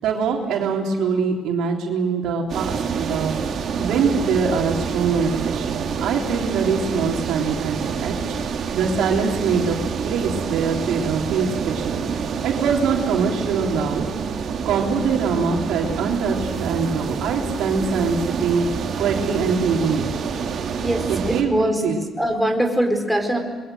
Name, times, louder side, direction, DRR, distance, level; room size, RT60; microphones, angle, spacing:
voice 1, 0.0-3.4 3.8-8.4 8.7-9.8 10.0-12.0 12.4-14.1 14.6-18.7 19.0-20.1 21.1-22.1, right 5 dB, 85° right, 0 dB, 3.6 m, -23 dB
sound 1, 2.5-21.4, right 6 dB, 65° right, 3.1 m, -27 dB
voice 2, 20.8-21.8 22.2-23.4, equal, ahead, 3 dB, 4.2 m, -22 dB
26.0 x 22.5 x 7.9 m, 1.3 s
cardioid pair, 90°, 0 cm